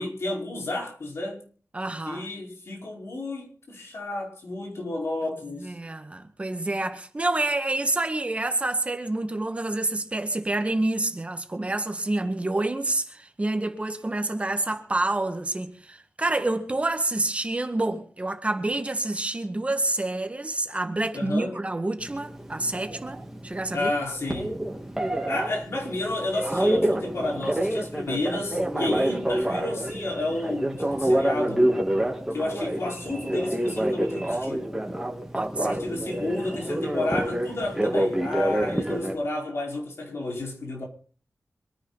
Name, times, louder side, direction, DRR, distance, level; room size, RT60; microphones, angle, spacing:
voice 1, 0.0-1.5 2.1-5.7 21.1-21.6 23.7-24.5 25.3-31.7 32.3-34.7 35.6-40.8, left 2 dB, 70° left, 4.9 m, -31 dB
voice 2, 1.7-2.3 5.6-23.9 28.9-29.1 35.3-35.8, right 2 dB, 25° right, 1.9 m, -28 dB
Telephone, 22.0-39.1, right 1 dB, 10° right, 3.1 m, -28 dB
26.0 x 10.5 x 4.2 m
wide cardioid pair, 100°, 5 cm